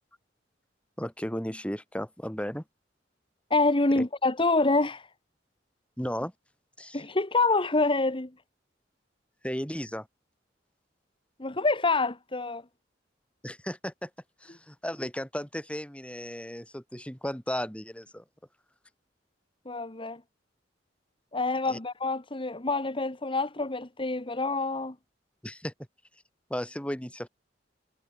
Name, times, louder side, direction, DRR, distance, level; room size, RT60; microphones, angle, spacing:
voice 1, 1.0-2.6 3.9-4.0 6.0-6.3 6.8-7.0 9.4-10.1 13.4-14.1 14.4-18.2 21.7-21.8 25.4-25.7 26.5-27.3, equal, 5° left, 4.6 m, -35 dB
voice 2, 3.5-5.1 6.9-8.3 11.4-12.6 19.6-20.2 21.3-24.9, left 3 dB, 30° left, 1.6 m, -26 dB
head